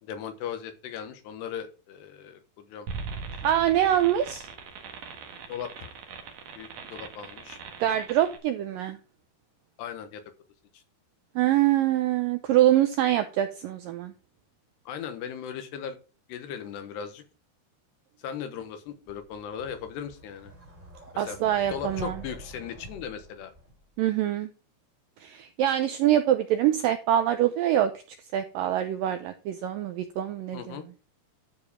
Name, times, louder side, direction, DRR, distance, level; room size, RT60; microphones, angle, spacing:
voice 1, 0.0-2.9 5.5-5.9 6.5-7.6 9.8-10.2 14.9-16.0 16.3-17.2 18.2-20.5 21.1-21.4 21.7-23.5 30.5-30.8, left 8 dB, 85° left, 8 dB, 3.4 m, -38 dB
sound 1, 2.9-8.4, right 5 dB, 55° right, 2.2 m, -40 dB
voice 2, 3.4-4.5 7.8-9.0 11.4-14.1 21.2-22.2 24.0-24.5 25.2-27.9 28.3-30.8, right 12 dB, 85° right, 8 dB, 2.0 m, -24 dB
sound 2, 19.1-24.0, equal, 15° right, 2.7 m, -46 dB
11.5 x 5.0 x 5.0 m, 0.34 s
omnidirectional pair, 4.8 m